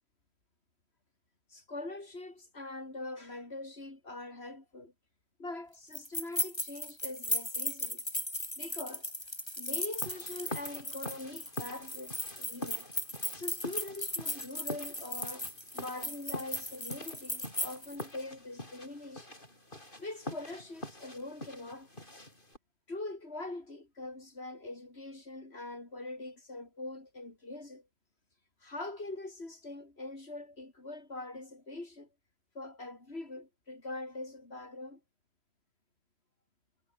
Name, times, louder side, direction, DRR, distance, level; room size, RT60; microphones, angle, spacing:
voice 1, 1.5-4.9 5.4-8.0 8.6-9.1 9.6-12.9 13.3-15.5 15.7-19.3 20.0-21.9 22.9-27.9 28.6-32.1 32.5-35.0, left 2 dB, 80° left, 4.6 m, -43 dB
sound 1, 5.9-18.0, left 1 dB, 25° left, 6.3 m, -37 dB
sound 2, 10.0-22.6, left 1 dB, 55° left, 7.2 m, -45 dB
omnidirectional pair, 1.1 m